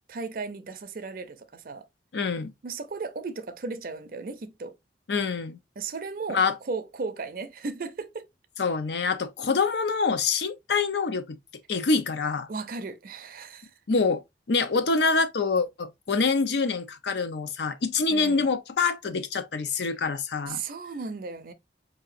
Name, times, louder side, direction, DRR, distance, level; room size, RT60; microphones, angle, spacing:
voice 1, 0.1-1.9 2.6-4.8 5.8-8.3 12.5-13.7 18.1-18.5 19.7-19.9 20.5-21.5, right 4 dB, 55° right, 0.5 m, -36 dB
voice 2, 2.1-2.5 5.1-5.6 6.3-6.5 8.6-11.4 11.7-12.5 13.9-14.2 14.5-20.6, left 4 dB, 75° left, 0.6 m, -25 dB
4.5 x 2.8 x 2.5 m
head